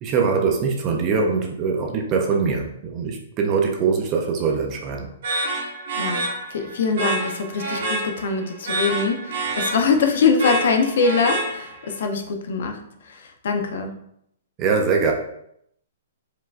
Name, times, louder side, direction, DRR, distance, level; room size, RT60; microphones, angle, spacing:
voice 1, 0.0-5.1 14.6-15.1, right 5 dB, 20° right, 2 dB, 0.4 m, -22 dB
sound 1, 5.2-11.9, right 2 dB, 45° right, 1.1 m, -28 dB
voice 2, 6.5-13.9, left 5 dB, 55° left, 5 dB, 0.6 m, -23 dB
4.6 x 3.6 x 2.4 m, 0.73 s
hypercardioid pair, 180°, 0 cm